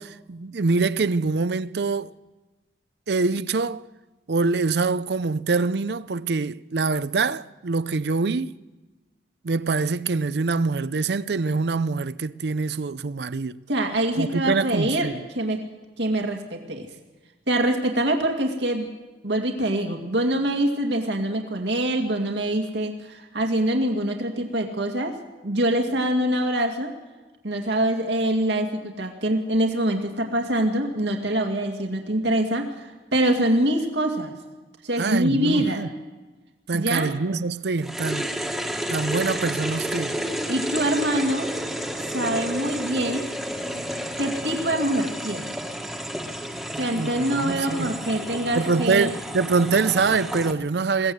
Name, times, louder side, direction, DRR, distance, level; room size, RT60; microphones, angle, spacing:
voice 1, 0.0-2.1 3.1-3.9 4.3-8.6 9.4-13.6 14.2-15.2 35.0-35.9 36.7-38.3 38.9-40.1 46.9-48.0 48.5-51.1, right 4 dB, 65° right, 0.6 m, -24 dB
voice 2, 13.7-15.1 15.3-15.6 16.0-16.9 17.5-18.9 19.2-25.1 25.4-26.9 27.4-34.3 34.8-35.9 36.7-37.1 40.5-41.5 42.0-43.3 44.2-45.5 46.7-49.1, right 1 dB, 80° right, 2.3 m, -24 dB
sound 1, 37.8-50.5, equal, ahead, 1.5 m, -31 dB
22.0 x 16.5 x 7.9 m
head